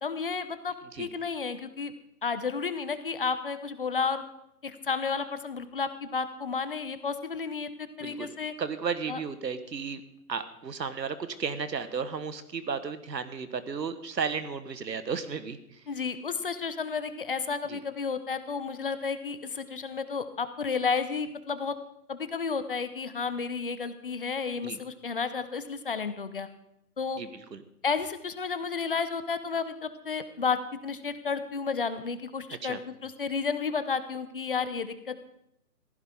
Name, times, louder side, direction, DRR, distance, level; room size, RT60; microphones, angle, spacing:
voice 1, 0.0-1.9 2.2-4.2 4.6-8.5 9.1-9.2 15.9-21.8 22.1-26.5 27.0-27.2 27.8-35.2, left 5 dB, 35° left, 12 dB, 0.7 m, -32 dB
voice 2, 8.6-10.0 10.3-15.8 17.7-17.8 24.6-24.8 27.2-27.6 32.6-32.8, right 6 dB, 85° right, 11 dB, 1.6 m, -34 dB
15.5 x 15.0 x 3.7 m, 0.78 s
hypercardioid pair, 160°, 49 cm